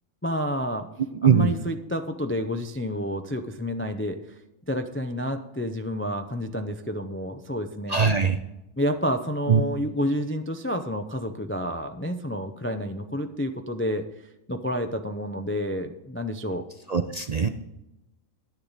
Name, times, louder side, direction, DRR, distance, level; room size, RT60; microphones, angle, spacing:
voice 1, 0.2-0.9 1.2-4.4 4.7-8.0 8.8-16.6, equal, 20° left, 7 dB, 0.3 m, -29 dB
voice 2, 1.2-1.5 7.9-8.4 9.5-9.6 16.9-17.5, right 6 dB, 50° right, 8 dB, 0.5 m, -20 dB
10.5 x 10.0 x 4.0 m, 0.94 s
omnidirectional pair, 1.3 m